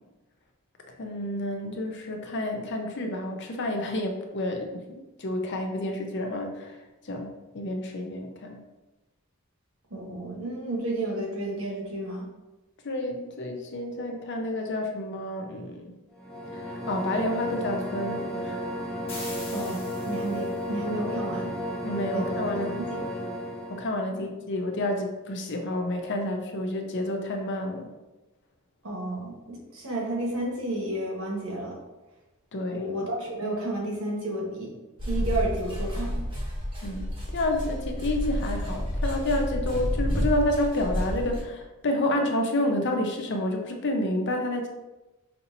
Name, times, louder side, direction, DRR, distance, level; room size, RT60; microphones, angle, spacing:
voice 1, 1.0-6.8 7.0-8.6 12.8-15.9 16.5-18.6 21.8-22.8 23.1-23.3 23.7-27.9 32.5-32.9 36.8-44.7, left 1 dB, 50° left, 3 dB, 0.6 m, -29 dB
voice 2, 9.9-12.3 19.5-21.5 22.1-22.4 22.9-23.0 28.8-31.8 32.7-34.7 35.0-36.2, right 1 dB, 65° right, -2 dB, 1.2 m, -31 dB
sound 1, 16.1-23.9, equal, 5° left, 0.7 m, -33 dB
sound 2, 19.1-20.6, left 2 dB, 25° left, 1.4 m, -42 dB
sound 3, 35.0-41.4, equal, 25° right, 0.9 m, -30 dB
5.3 x 2.9 x 2.7 m, 1.1 s
head